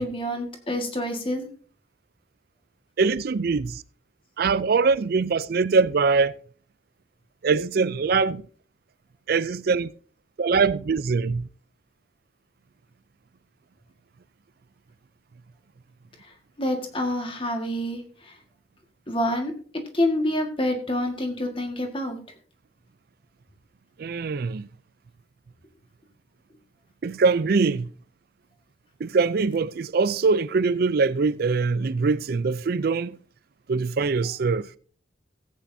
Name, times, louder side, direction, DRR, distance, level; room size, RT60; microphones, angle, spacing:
voice 1, 0.0-1.5 16.6-18.0 19.1-19.5 19.9-22.2, left 1 dB, 30° left, 1.7 m, -27 dB
voice 2, 3.0-3.8 4.4-6.4 7.4-8.4 9.3-9.9 10.4-11.5 24.0-24.7 27.0-27.9 29.0-33.2 33.7-34.7, right 4 dB, 50° right, 0.4 m, -23 dB
16.5 x 8.5 x 2.7 m
head